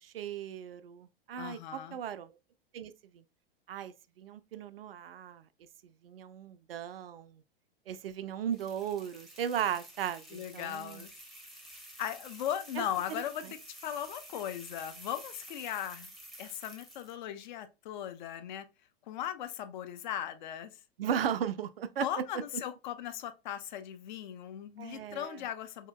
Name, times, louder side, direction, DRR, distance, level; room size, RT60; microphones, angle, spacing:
voice 1, 0.0-2.4 2.7-3.2 3.7-5.5 6.0-7.4 7.9-11.0 12.8-12.9 21.0-22.1 24.8-25.4, right 9 dB, 65° right, 0.5 m, -36 dB
voice 2, 1.4-2.0 10.3-11.1 12.0-16.1 16.4-18.7 19.1-20.8 22.0-25.9, left 10 dB, 50° left, 0.5 m, -38 dB
sound 1, 8.5-17.2, right 1 dB, ahead, 0.6 m, -51 dB
3.7 x 2.8 x 2.2 m
figure-of-eight pair, 90°, 31 cm